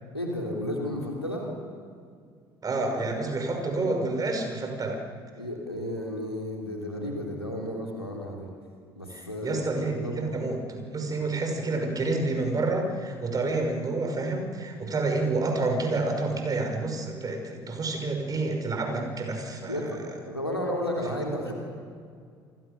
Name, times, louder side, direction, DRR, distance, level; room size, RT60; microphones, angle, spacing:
voice 1, 0.1-1.6 5.4-8.5 9.0-9.6 10.0-10.3 19.7-21.5, left 1 dB, 90° left, 0 dB, 3.1 m, -32 dB
voice 2, 2.6-5.0 9.1-19.9, right 2 dB, 30° right, 4 dB, 5.9 m, -29 dB
28.5 x 21.5 x 6.9 m, 2.2 s
figure-of-eight pair, 60°, 13 cm